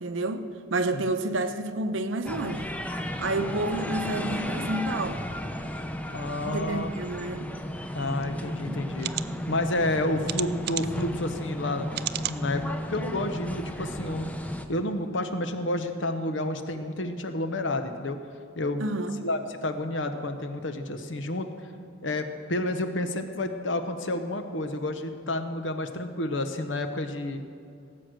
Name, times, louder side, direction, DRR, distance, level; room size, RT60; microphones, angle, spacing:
voice 1, 0.0-2.7 3.2-5.3 6.5-7.5 8.4-8.8 18.8-19.2, right 2 dB, 80° right, 9 dB, 0.8 m, -30 dB
sound 1, 2.3-14.7, equal, 5° left, 0.6 m, -34 dB
voice 2, 6.1-6.9 7.9-9.1 9.5-11.9 12.3-14.3 14.7-18.2 18.6-18.9 19.2-21.5 22.0-27.4, left 1 dB, 70° left, 8 dB, 1.0 m, -30 dB
sound 2, 8.2-8.3 9.0-9.2 10.2-11.0 11.9-12.4 12.9-13.0 13.4-13.5, right 14 dB, 55° right, 0.4 m, -32 dB
17.5 x 7.9 x 6.5 m, 2.5 s
head